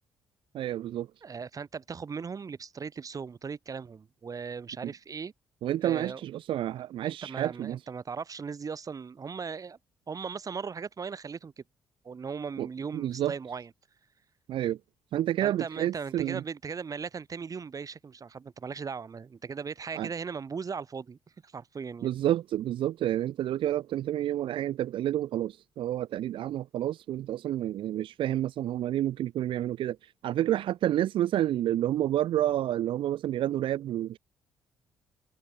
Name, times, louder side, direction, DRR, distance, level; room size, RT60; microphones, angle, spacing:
voice 1, 0.5-1.1 5.6-7.8 12.6-12.7 12.9-13.3 14.5-14.8 15.1-16.4 20.0-20.1 22.0-34.2, right 12 dB, 65° right, 0.8 m, -29 dB
voice 2, 1.2-5.3 5.8-6.2 7.0-9.8 10.1-11.6 12.0-13.7 15.4-22.1, right 5 dB, 40° right, 1.3 m, -38 dB
hypercardioid pair, 55°, 9 cm